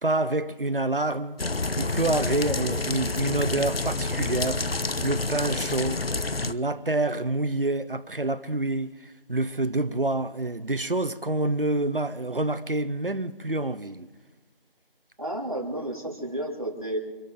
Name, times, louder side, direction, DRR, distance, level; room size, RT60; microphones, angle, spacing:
voice 1, 0.0-1.4 1.8-4.6 5.0-6.0 6.4-14.1, right 2 dB, 65° right, 1.1 m, -27 dB
sound 1, 1.4-6.5, left 3 dB, 90° left, 1.0 m, -28 dB
voice 2, 15.2-17.0, right 1 dB, 40° right, 3.1 m, -31 dB
29.5 x 12.0 x 3.8 m
figure-of-eight pair, 180°, 29 cm